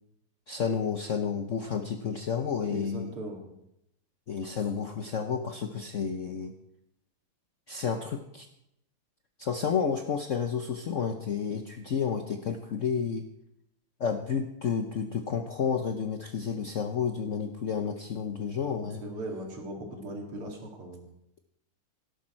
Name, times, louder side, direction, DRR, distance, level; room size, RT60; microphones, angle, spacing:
voice 1, 0.5-3.1 4.3-6.5 7.7-8.5 9.4-13.3 14.0-19.0, left 6 dB, 65° left, 6 dB, 0.7 m, -31 dB
voice 2, 2.7-3.4 18.7-21.0, right 1 dB, 90° right, 1 dB, 3.4 m, -39 dB
17.5 x 11.5 x 4.4 m, 0.82 s
omnidirectional pair, 2.4 m